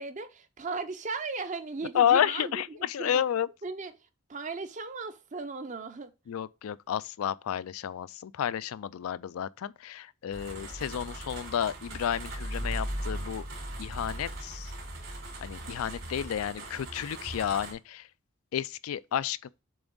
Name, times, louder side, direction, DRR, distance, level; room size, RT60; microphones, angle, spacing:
voice 1, 0.0-3.2 3.6-3.9 4.3-6.1, right 4 dB, 35° right, 0.6 m, -37 dB
voice 2, 1.9-3.5 6.3-13.5 13.8-14.7 15.4-18.1 18.5-19.5, left 9 dB, 85° left, 0.3 m, -31 dB
sound 1, 10.3-17.7, right 1 dB, 65° right, 3.1 m, -38 dB
7.0 x 3.5 x 3.8 m
head